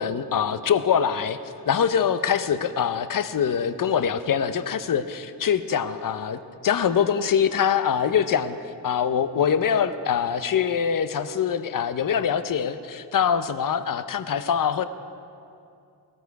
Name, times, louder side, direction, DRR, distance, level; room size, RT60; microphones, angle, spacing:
voice 1, 0.0-1.4 1.6-8.6 8.8-14.9, left 7 dB, 45° left, 12 dB, 0.8 m, -24 dB
17.5 x 13.0 x 4.8 m, 2.5 s
supercardioid pair, 55°, 45 cm